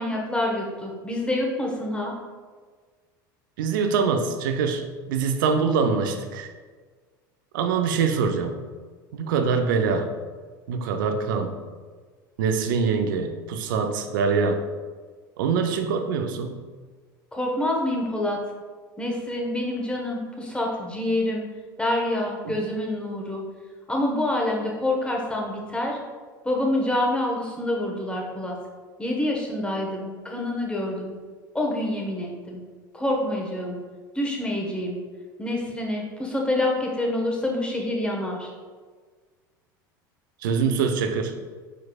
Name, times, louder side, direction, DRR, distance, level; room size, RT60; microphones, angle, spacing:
voice 1, 0.0-2.1 17.3-18.4 19.0-21.4 21.8-23.4 23.9-26.0 26.4-28.5 29.0-31.1 31.5-32.6 32.9-33.8 34.1-35.0 35.4-38.5, left 1 dB, 10° left, -1 dB, 1.1 m, -27 dB
voice 2, 3.6-6.5 7.5-8.6 9.1-10.1 10.7-11.5 12.4-14.6 15.4-16.6 22.4-22.5 40.4-41.3, right 5 dB, 75° right, 7 dB, 0.5 m, -24 dB
4.9 x 4.5 x 2.3 m, 1.5 s
hypercardioid pair, 80°, 11 cm